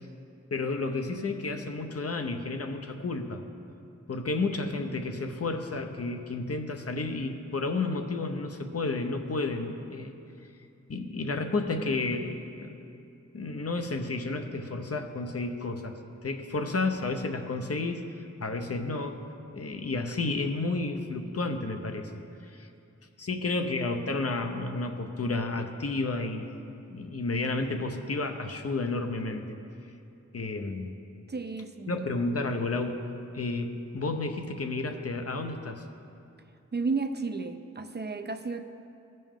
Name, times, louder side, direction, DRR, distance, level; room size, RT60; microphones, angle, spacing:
voice 1, 0.5-3.4 4.1-10.1 10.9-12.8 13.3-18.0 18.4-19.2 19.5-22.1 22.4-22.7 23.2-26.5 26.9-29.6 30.3-30.9 31.9-33.0 33.3-35.8, left 3 dB, 55° left, 5 dB, 0.7 m, -31 dB
voice 2, 31.3-32.1 36.7-38.6, right 4 dB, 35° right, 7 dB, 0.5 m, -32 dB
15.5 x 5.4 x 3.6 m, 2.6 s
wide cardioid pair, 50°, 29 cm